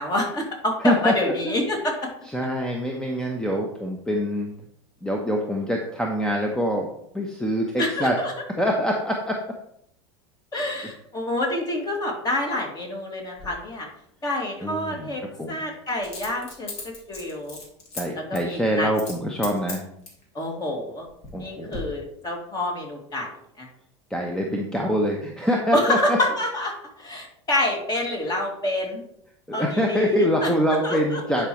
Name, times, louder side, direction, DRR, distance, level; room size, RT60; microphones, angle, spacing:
voice 1, 0.0-1.9 7.8-8.3 10.5-13.9 14.2-15.2 15.5-16.7 17.1-17.6 18.1-18.9 20.3-21.1 21.4-23.3 23.6-23.7 25.7-29.0 29.5-30.5 30.8-31.2, left 1 dB, 25° left, 0 dB, 2.5 m, -27 dB
voice 2, 0.8-1.1 1.4-1.5 2.2-4.5 5.0-6.9 7.1-8.2 8.6-9.4 14.6-15.1 15.4-15.6 17.9-19.8 21.3-21.8 24.1-26.2 29.5-31.5, equal, 5° left, 1 dB, 1.0 m, -25 dB
Coin (dropping), 13.4-13.5 16.0-18.0 18.3-18.5 18.9-19.2 19.4-20.2 20.9-21.4 21.7-21.8, left 3 dB, 45° left, 2.4 m, -37 dB
10.0 x 4.8 x 3.1 m, 0.71 s
hypercardioid pair, 90°, 15 cm